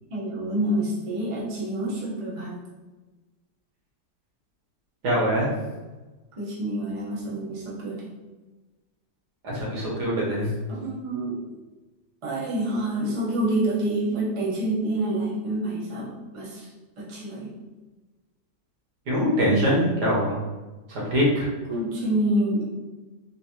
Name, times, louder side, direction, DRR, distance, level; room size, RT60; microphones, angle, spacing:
voice 1, 0.1-2.6 6.4-8.0 10.7-11.4 12.2-16.7 17.0-17.5 21.7-22.6, right 1 dB, 35° right, -6 dB, 0.5 m, -27 dB
voice 2, 5.0-5.5 9.4-10.5 19.1-20.4 20.9-21.5, equal, 70° right, -5 dB, 1.6 m, -23 dB
3.9 x 2.6 x 2.8 m, 1.2 s
omnidirectional pair, 1.9 m